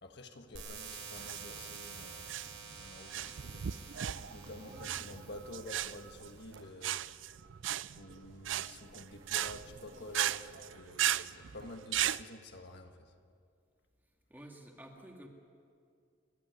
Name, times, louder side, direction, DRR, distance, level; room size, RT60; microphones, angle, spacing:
voice 1, 0.0-3.8 4.3-7.0 8.0-13.1, left 1 dB, 60° left, 4 dB, 1.6 m, -49 dB
sound 1, 0.5-6.5, right 6 dB, 85° right, 5.6 m, -49 dB
sound 2, 1.1-12.2, right 11 dB, 65° right, 0.5 m, -36 dB
sound 3, 2.4-10.6, right 1 dB, 40° right, 3.2 m, -58 dB
voice 2, 4.6-5.2 14.3-15.3, right 1 dB, 10° right, 1 dB, 2.3 m, -52 dB
30.0 x 12.5 x 9.5 m, 2.3 s
head